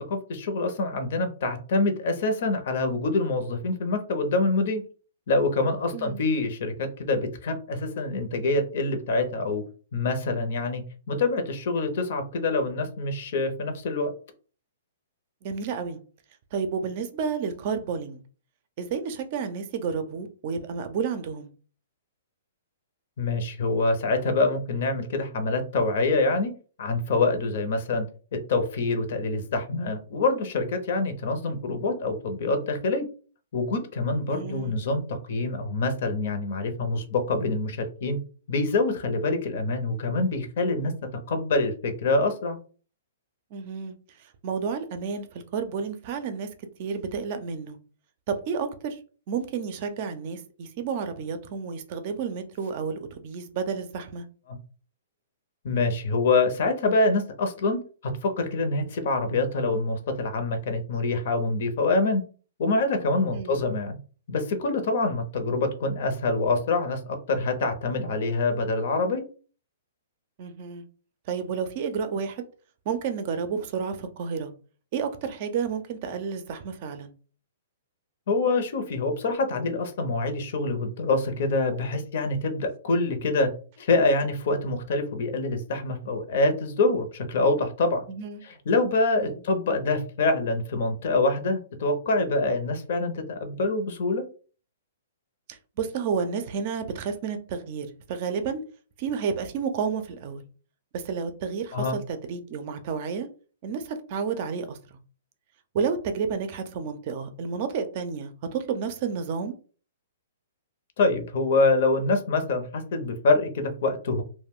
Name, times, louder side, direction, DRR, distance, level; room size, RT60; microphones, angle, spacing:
voice 1, 0.0-4.8 5.3-9.6 9.9-14.1 23.2-26.5 26.8-28.1 28.3-33.1 33.5-38.2 38.5-40.9 41.3-42.6 54.5-54.6 55.6-62.2 62.6-64.0 64.3-69.2 78.3-83.5 83.8-88.0 88.4-94.2 101.7-102.0 111.0-114.2, left 3 dB, 60° left, 0.7 m, -25 dB
voice 2, 15.4-16.0 16.5-18.2 18.8-21.5 34.3-34.8 43.5-43.9 44.4-46.5 46.8-47.8 48.3-49.0 49.3-54.3 63.3-63.6 70.4-70.8 71.3-72.4 72.9-74.5 74.9-77.1 88.1-88.4 89.2-89.4 95.5-98.6 99.0-100.4 100.9-103.3 103.6-104.8 105.7-109.5, right 6 dB, 45° right, 0.5 m, -31 dB
2.3 x 2.1 x 3.6 m
hypercardioid pair, 145°, 0 cm